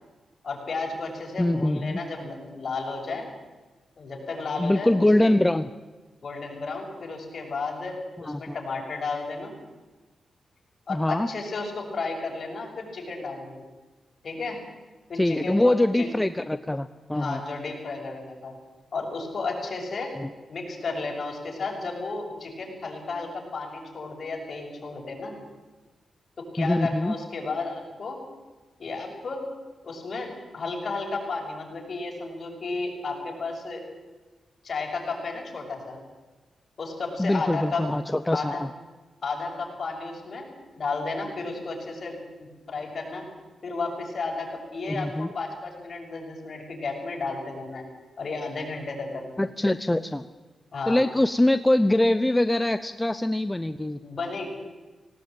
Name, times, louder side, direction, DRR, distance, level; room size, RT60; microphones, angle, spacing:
voice 1, 0.4-3.2 4.0-5.3 6.2-9.5 10.9-13.6 14.2-14.6 15.1-16.1 17.1-18.5 18.9-20.1 20.5-25.3 26.4-28.2 28.8-29.4 29.8-33.8 34.6-36.0 36.8-37.8 38.3-38.6 39.2-40.4 40.7-43.2 43.6-47.9 48.2-49.4 50.7-51.0 54.0-54.5, left 3 dB, 50° left, 0 dB, 6.6 m, -33 dB
voice 2, 1.4-2.0 4.6-5.7 8.3-8.5 10.9-11.3 15.2-17.4 20.2-20.3 26.6-27.2 37.2-38.7 44.9-45.3 49.4-50.3 50.9-54.0, left 1 dB, 10° left, 11 dB, 0.6 m, -23 dB
18.5 x 18.0 x 8.9 m, 1.2 s
cardioid pair, 90°, 0 cm